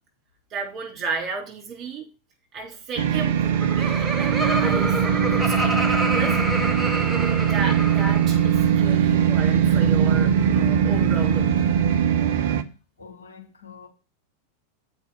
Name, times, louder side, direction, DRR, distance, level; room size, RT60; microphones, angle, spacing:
voice 1, 0.5-2.1 2.5-5.7 6.0-6.4 7.0-11.5, right 4 dB, 35° right, 4.6 m, -33 dB
sound 1, 3.0-12.6, right 8 dB, 55° right, 0.7 m, -21 dB
Laughter, 3.4-8.5, right 1 dB, 5° right, 1.3 m, -28 dB
voice 2, 13.0-13.9, left 6 dB, 70° left, 1.6 m, -45 dB
8.1 x 5.2 x 6.6 m
figure-of-eight pair, 90°, 0 cm